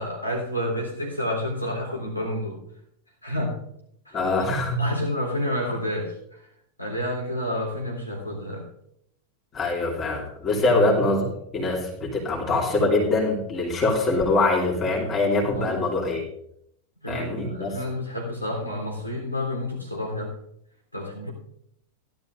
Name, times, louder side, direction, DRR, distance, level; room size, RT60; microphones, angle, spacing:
voice 1, 0.0-2.6 3.2-3.6 4.1-4.2 4.8-6.4 6.8-8.7 10.7-10.8 15.5-15.9 17.0-20.3 20.9-21.3, left 1 dB, 85° left, -1 dB, 3.6 m, -29 dB
voice 2, 4.1-4.9 9.5-16.2 17.1-17.8, left 2 dB, 25° left, -3 dB, 2.9 m, -23 dB
16.5 x 12.0 x 2.6 m, 0.73 s
figure-of-eight pair, 90°, 0 cm